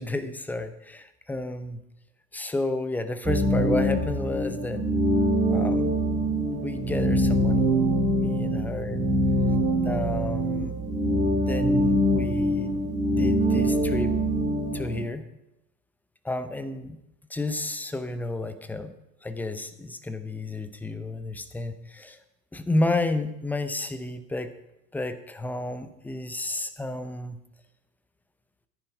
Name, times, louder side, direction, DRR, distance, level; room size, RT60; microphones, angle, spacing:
voice 1, 0.0-1.8 2.3-4.9 5.5-5.9 6.6-7.9 8.2-9.1 9.8-10.8 11.5-14.1 14.7-15.2 16.2-17.0 17.3-18.9 19.2-22.2 22.5-24.5 24.9-27.4, left 2 dB, 5° left, 10 dB, 0.7 m, -31 dB
sound 1, 3.2-15.0, right 1 dB, 15° right, 3.8 m, -24 dB
14.5 x 9.8 x 5.0 m, 0.87 s
figure-of-eight pair, 90°, 49 cm